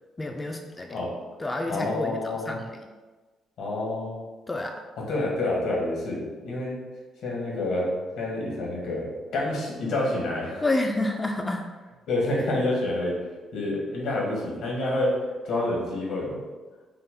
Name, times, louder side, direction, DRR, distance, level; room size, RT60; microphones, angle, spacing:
voice 1, 0.2-1.0 1.4-2.6 4.5-4.8 10.6-11.7, left 2 dB, 20° left, 3 dB, 0.3 m, -29 dB
voice 2, 1.7-2.6 3.6-4.2 5.0-6.8 7.2-10.6 12.1-13.2 13.5-15.1 15.4-16.4, left 2 dB, 80° left, -3 dB, 1.4 m, -28 dB
5.6 x 2.0 x 3.6 m, 1.3 s
cardioid pair, 90°, 0 cm